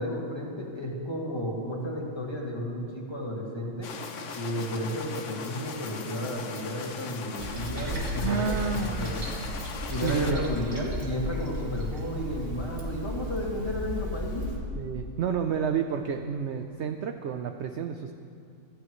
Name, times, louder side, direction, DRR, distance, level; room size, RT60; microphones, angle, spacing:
voice 1, 0.0-3.9 4.4-9.2 9.9-14.5, left 1 dB, 20° left, -3 dB, 1.9 m, -33 dB
sound 1, 3.8-10.3, left 5 dB, 60° left, 1.0 m, -39 dB
Toilet flush, 7.4-14.6, equal, 80° right, 2.2 m, -34 dB
voice 2, 8.2-9.2 10.0-10.9 14.8-18.1, right 7 dB, 65° right, 6 dB, 0.7 m, -30 dB
15.5 x 15.0 x 3.1 m, 2.5 s
omnidirectional pair, 1.6 m